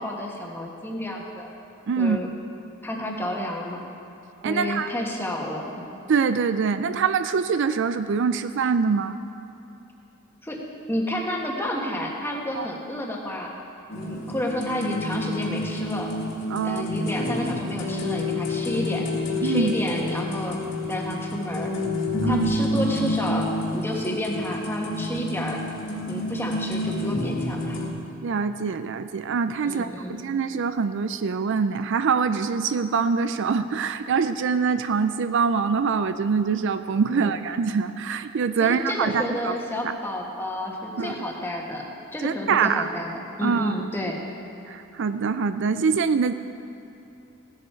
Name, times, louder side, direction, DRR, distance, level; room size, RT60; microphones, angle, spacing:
voice 1, 0.0-1.5 2.0-2.3 2.8-3.8 4.4-5.8 10.4-13.5 13.9-16.1 16.6-20.6 20.9-21.7 22.3-25.6 26.1-27.8 29.6-30.2 37.1-37.4 38.6-41.8 42.1-44.2, left 1 dB, 10° left, -1 dB, 1.5 m, -30 dB
voice 2, 1.9-2.2 4.4-4.9 6.1-9.2 12.6-12.7 16.5-16.8 19.4-19.7 22.2-22.5 28.2-39.6 39.8-39.9 41.0-41.3 42.2-42.9 43.4-43.7 44.7-46.3, right 5 dB, 60° right, 11 dB, 0.4 m, -24 dB
sound 1, 13.9-27.9, left 1 dB, 65° left, 2.2 m, -29 dB
16.0 x 11.5 x 4.5 m, 2.9 s
head